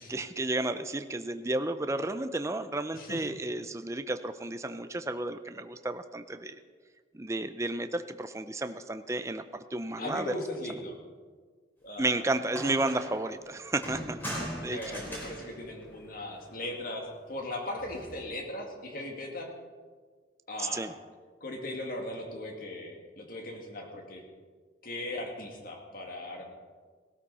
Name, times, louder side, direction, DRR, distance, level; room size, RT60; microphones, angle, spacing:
voice 1, 0.0-6.6 7.1-9.4 9.7-10.3 12.0-14.2 14.6-14.8 20.6-20.9, right 2 dB, 15° right, 9 dB, 0.5 m, -32 dB
voice 2, 2.9-3.2 10.0-11.0 11.8-12.2 14.6-19.5 20.5-20.9 21.4-24.2 24.8-26.5, left 1 dB, 50° left, 2 dB, 2.3 m, -38 dB
sound 1, 12.1-12.2 12.5-13.2 13.8-16.5 17.8-18.2, equal, 10° left, 4.0 m, -40 dB
18.5 x 13.0 x 4.2 m, 1.5 s
head